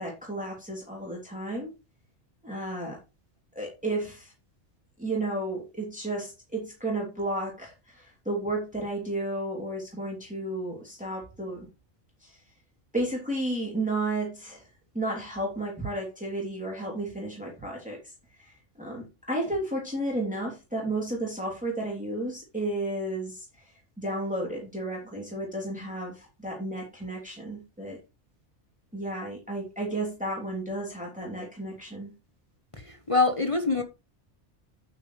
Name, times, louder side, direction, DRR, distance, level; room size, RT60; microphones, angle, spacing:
voice 1, 0.0-1.7 2.4-3.0 3.5-4.3 5.0-11.7 12.2-12.4 12.9-14.7 14.9-18.1 18.4-23.5 24.0-28.0 28.9-32.1, right 1 dB, 5° right, -3 dB, 3.1 m, -32 dB
voice 2, 32.8-33.8, left 3 dB, 30° left, 6 dB, 1.1 m, -25 dB
9.1 x 9.0 x 3.3 m, 0.27 s
omnidirectional pair, 1.2 m